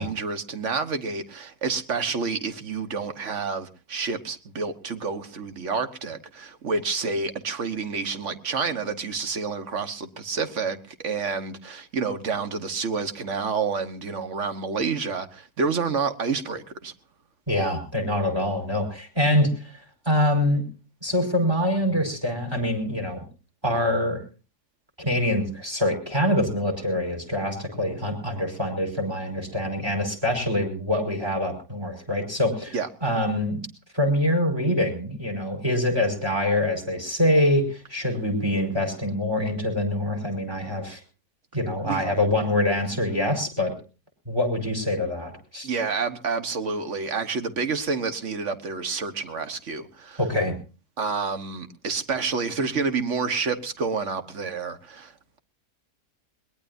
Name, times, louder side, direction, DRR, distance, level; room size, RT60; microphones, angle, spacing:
voice 1, 0.0-16.9 32.7-32.9 41.8-42.1 45.6-50.2 51.0-55.4, right 5 dB, 50° right, 1.6 m, -29 dB
voice 2, 17.5-19.8 20.1-20.7 21.0-23.2 23.6-24.2 25.0-33.6 33.9-41.0 41.5-43.7 44.3-45.7 50.2-50.6, left 1 dB, 15° right, 5.1 m, -25 dB
22.0 x 20.0 x 2.7 m
omnidirectional pair, 1.7 m